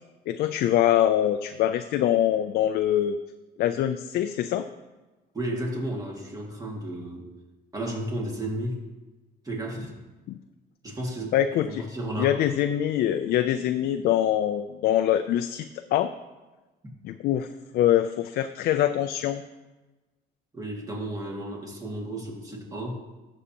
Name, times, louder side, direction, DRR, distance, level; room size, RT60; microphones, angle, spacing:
voice 1, 0.3-3.2 3.6-4.7 10.3-10.4 11.3-11.8 12.2-16.1 17.0-17.5 17.7-19.4, left 11 dB, 65° left, 8 dB, 0.4 m, -24 dB
voice 2, 5.3-7.3 7.7-8.8 9.4-10.0 10.8-12.4 20.5-23.0, right 1 dB, 20° right, -1 dB, 2.1 m, -33 dB
14.0 x 6.4 x 2.9 m, 1.2 s
cardioid pair, 110°, 17 cm